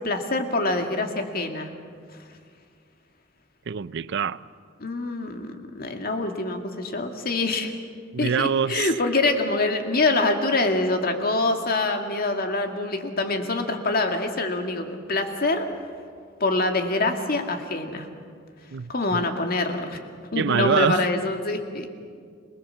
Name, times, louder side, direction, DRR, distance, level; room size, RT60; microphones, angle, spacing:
voice 1, 0.0-1.7 4.8-7.8 8.2-15.7 16.4-18.1 18.9-20.0 20.3-21.9, left 2 dB, 50° left, 2.2 m, -25 dB
voice 2, 3.7-4.4 8.1-8.9 18.7-19.2 20.4-21.1, right 6 dB, 65° right, 0.5 m, -25 dB
27.0 x 20.0 x 7.4 m
head